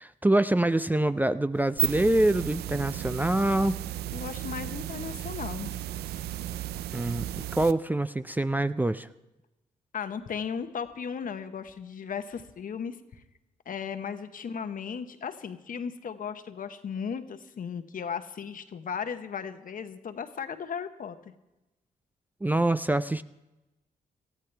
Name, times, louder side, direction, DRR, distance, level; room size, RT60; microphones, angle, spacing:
voice 1, 0.0-3.8 6.9-9.1 22.4-23.2, right 1 dB, 10° right, 13 dB, 0.4 m, -25 dB
sound 1, 1.6-7.7, right 12 dB, 85° right, 0.4 m, -34 dB
voice 2, 4.1-5.8 9.9-13.0 13.7-21.3, left 7 dB, 60° left, 9 dB, 1.0 m, -36 dB
18.5 x 14.0 x 3.3 m, 1.0 s
supercardioid pair, 60°, 16 cm